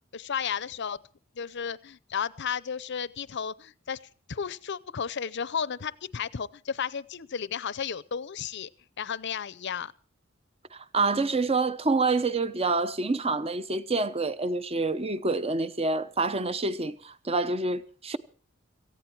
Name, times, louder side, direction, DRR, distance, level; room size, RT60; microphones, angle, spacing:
voice 1, 0.1-1.0 1.3-4.0 4.3-8.7 9.0-9.9, left 7 dB, 60° left, 0.6 m, -33 dB
voice 2, 10.7-18.2, right 3 dB, 30° right, 0.8 m, -27 dB
17.5 x 15.0 x 4.6 m
head